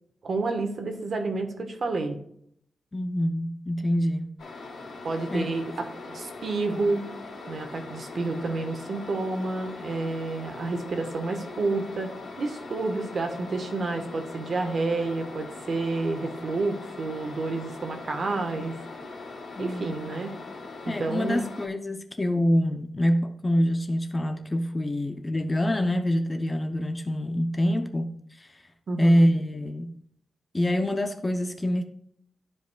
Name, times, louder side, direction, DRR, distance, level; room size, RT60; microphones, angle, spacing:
voice 1, 0.2-2.2 5.0-7.1 7.5-18.7 19.6-20.3 20.9-21.4 28.9-29.3, right 3 dB, 45° right, 1.2 m, -29 dB
voice 2, 2.9-4.3 5.3-5.5 19.6-20.0 20.9-28.6 29.0-29.9 30.5-31.8, equal, 15° left, 0.5 m, -25 dB
sound 1, 4.4-21.7, left 3 dB, 85° left, 2.6 m, -41 dB
13.5 x 5.1 x 2.3 m
wide cardioid pair, 165°, 0 cm